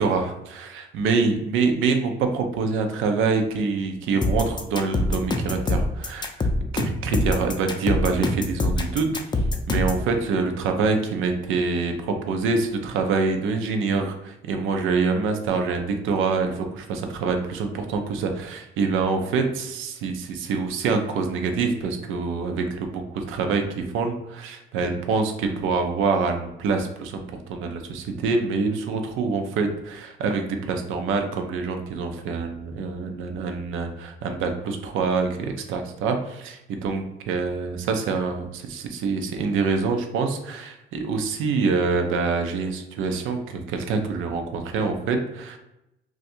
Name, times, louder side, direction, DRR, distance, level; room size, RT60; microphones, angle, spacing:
voice 1, 0.0-6.5 6.7-45.6, right 4 dB, 90° right, 5 dB, 0.5 m, -25 dB
sound 1, 4.2-10.0, left 2 dB, 20° left, 0.4 m, -24 dB
2.5 x 2.3 x 4.1 m, 0.88 s
cardioid pair, 90°, 20 cm